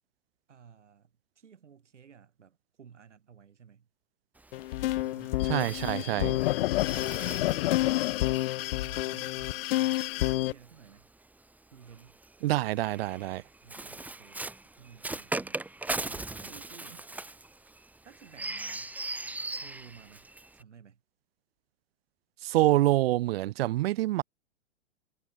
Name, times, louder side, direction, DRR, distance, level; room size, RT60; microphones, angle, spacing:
voice 1, 0.5-3.9 5.0-5.5 6.8-8.5 8.7-11.1 11.7-12.2 13.6-14.4 14.8-15.7 16.0-17.1 18.0-18.9 19.5-20.3 20.5-21.0, right 7 dB, 85° right, 5.4 m, -54 dB
Bird, 4.4-10.9 11.8-20.6, right 2 dB, 5° right, 1.3 m, -40 dB
sound 1, 4.5-10.5, left 17 dB, 55° left, 0.6 m, -29 dB
voice 2, 5.4-6.4 12.4-13.4 22.4-24.2, right 16 dB, 60° right, 0.5 m, -26 dB
hypercardioid pair, 120°, 35 cm